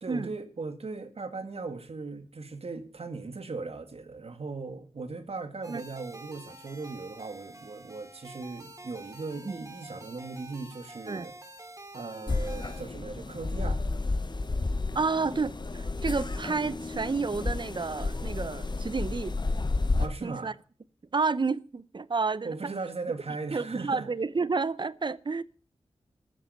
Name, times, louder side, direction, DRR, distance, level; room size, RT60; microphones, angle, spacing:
voice 1, 0.0-11.3 11.9-13.8 20.0-20.5 22.4-24.0, right 3 dB, 65° right, 1.9 m, -38 dB
sound 1, 5.6-12.8, right 2 dB, 30° right, 2.5 m, -48 dB
sound 2, 12.3-20.1, left 3 dB, 45° left, 1.2 m, -31 dB
voice 2, 14.9-19.4 20.2-20.5 21.1-22.6 23.5-25.4, right 4 dB, 45° right, 0.7 m, -30 dB
14.0 x 7.7 x 6.7 m
cardioid pair, 50°, 11 cm